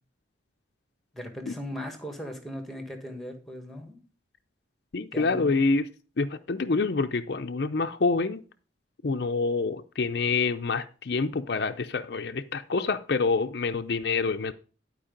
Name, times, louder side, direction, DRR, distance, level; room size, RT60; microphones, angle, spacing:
voice 1, 1.1-4.0 5.1-5.6, left 1 dB, ahead, 1.5 m, -38 dB
voice 2, 4.9-5.9 6.2-8.4 9.0-14.5, left 4 dB, 55° left, 0.5 m, -27 dB
11.5 x 4.7 x 5.1 m
head